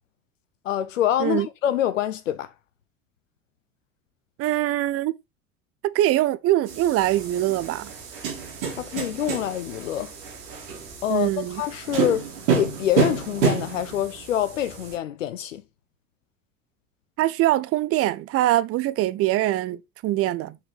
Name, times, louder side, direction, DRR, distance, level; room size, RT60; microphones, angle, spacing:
voice 1, 0.6-2.5 8.7-10.1 11.0-12.3 12.5-15.6, left 11 dB, 70° left, 0.8 m, -26 dB
voice 2, 4.4-5.1 5.8-7.9 11.1-11.6 17.2-20.6, right 14 dB, 35° right, 0.8 m, -23 dB
sound 1, 6.7-15.0, right 6 dB, 60° right, 4.4 m, -29 dB
7.4 x 6.8 x 4.0 m
figure-of-eight pair, 70°, 39 cm